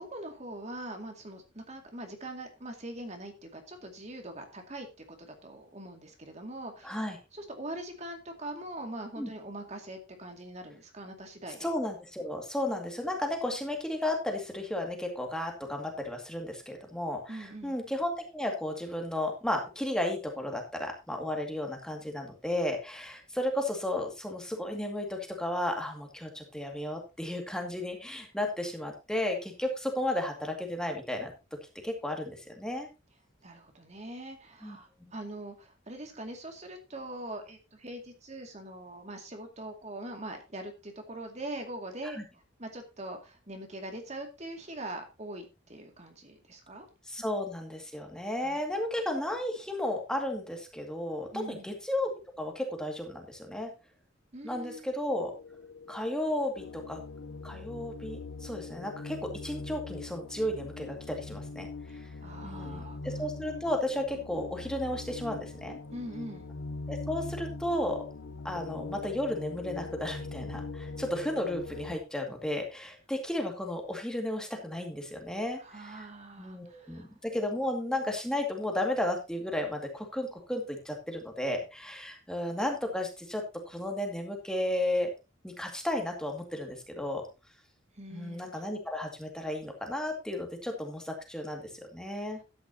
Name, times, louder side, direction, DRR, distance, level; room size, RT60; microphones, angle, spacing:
voice 1, 0.0-11.7 17.3-17.8 33.4-42.2 42.6-46.9 48.4-48.6 51.3-51.7 54.3-55.0 61.9-63.0 65.9-66.4 75.6-77.1 88.0-88.5 92.3-92.4, right 1 dB, 35° right, 4 dB, 2.3 m, -42 dB
voice 2, 6.8-7.2 9.2-9.3 11.6-31.3 31.8-32.9 34.6-35.1 42.0-42.2 47.1-52.1 52.4-53.7 54.4-55.3 55.9-57.0 57.4-61.7 61.9-62.1 62.4-65.8 66.9-68.0 68.4-76.1 76.4-85.1 85.4-87.3 88.1-92.4, left 1 dB, 5° left, 2 dB, 2.2 m, -33 dB
sound 1, 55.1-72.0, left 3 dB, 75° left, 0.8 m, -42 dB
13.0 x 10.0 x 2.8 m, 0.27 s
head